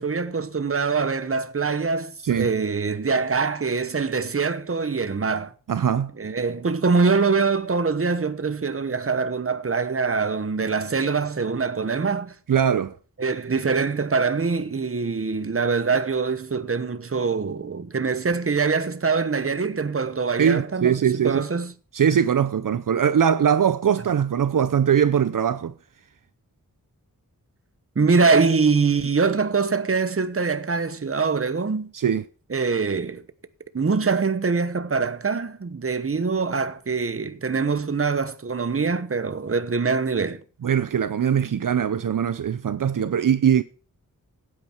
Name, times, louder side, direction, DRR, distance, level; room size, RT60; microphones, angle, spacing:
voice 1, 0.0-5.5 6.2-12.3 13.2-21.7 28.0-31.9 32.5-33.2 33.7-40.4, right 4 dB, 40° right, 1.1 m, -24 dB
voice 2, 5.7-6.1 12.5-12.9 20.4-21.4 21.9-25.7 31.9-32.2 40.6-43.6, right 8 dB, 70° right, 0.6 m, -21 dB
15.5 x 9.0 x 4.5 m
wide cardioid pair, 75°, 34 cm